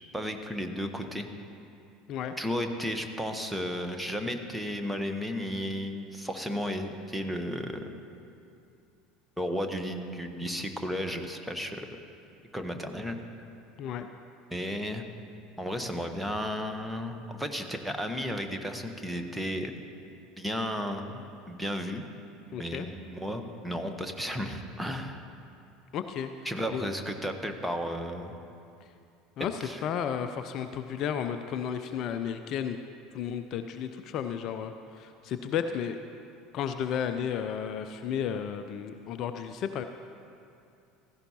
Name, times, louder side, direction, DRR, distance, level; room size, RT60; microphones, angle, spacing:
voice 1, 0.1-1.3 2.4-7.8 9.4-11.9 12.5-13.2 14.5-15.0 15.6-19.7 20.4-22.0 22.5-25.2 26.4-28.3 29.6-29.8, equal, 5° right, 5 dB, 1.1 m, -33 dB
voice 2, 22.5-22.9 25.9-26.3 26.7-26.9 29.4-32.8 33.1-36.0 36.5-39.8, left 8 dB, 45° left, 8 dB, 0.4 m, -33 dB
16.0 x 14.0 x 2.9 m, 2.6 s
figure-of-eight pair, 70°, 0 cm